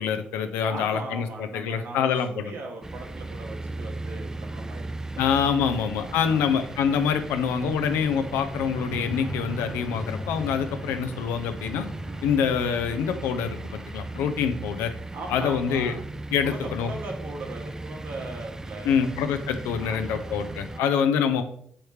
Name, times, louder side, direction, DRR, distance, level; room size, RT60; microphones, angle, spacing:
voice 1, 0.0-2.5 5.2-11.9 12.2-14.9 15.3-15.9 16.3-16.9 18.8-21.4, left 7 dB, 80° left, 8 dB, 0.4 m, -25 dB
voice 2, 0.6-4.9 5.2-5.5 5.8-6.4 12.0-12.3 15.1-16.0 16.4-19.1 19.8-21.0, right 3 dB, 70° right, 1 dB, 1.1 m, -40 dB
sound 1, 2.8-20.8, right 2 dB, 15° right, 0.3 m, -37 dB
sound 2, 6.7-14.7 15.2-15.3 15.6-15.7 16.0-16.2, left 1 dB, 50° left, 1.4 m, -42 dB
3.2 x 3.1 x 4.7 m, 0.63 s
hypercardioid pair, 50°, 4 cm